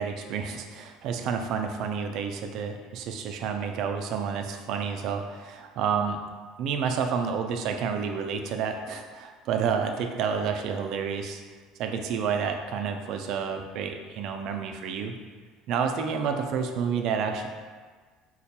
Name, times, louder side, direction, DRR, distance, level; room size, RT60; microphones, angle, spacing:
voice 1, 0.0-6.2 6.6-11.4 11.8-15.1 15.7-17.5, right 6 dB, 60° right, 5 dB, 0.3 m, -29 dB
3.9 x 2.1 x 2.8 m, 1.5 s
supercardioid pair, 115°, 0 cm